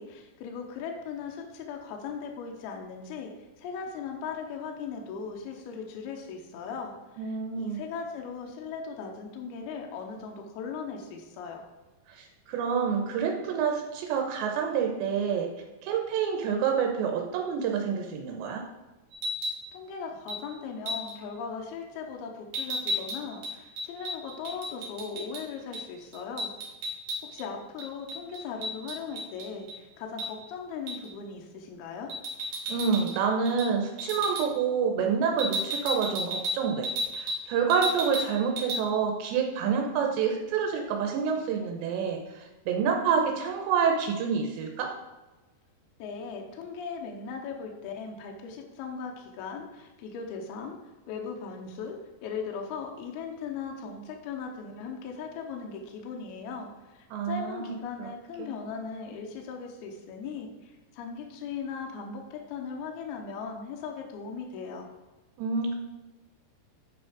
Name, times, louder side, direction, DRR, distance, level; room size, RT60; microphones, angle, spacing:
voice 1, 0.0-11.6 19.7-26.5 27.3-32.1 46.0-50.8 51.1-64.9, left 5 dB, 75° left, 2 dB, 2.6 m, -38 dB
voice 2, 7.2-7.8 12.1-15.5 15.8-18.6 32.7-36.9 37.2-44.9 57.1-58.1 58.4-58.5 65.4-65.7, right 6 dB, 85° right, 2 dB, 3.0 m, -28 dB
sound 1, 19.1-19.6 20.3-20.4 20.9-21.2 22.5-25.4 25.7-25.9 26.1-27.5 27.8-29.8 30.2-30.3 30.9-31.1 32.1-33.2 33.5-33.7 34.0-34.5 35.4-37.4 37.7-38.3 38.6-38.8, equal, 50° right, 2.3 m, -33 dB
8.7 x 5.3 x 5.0 m, 1.2 s
omnidirectional pair, 5.2 m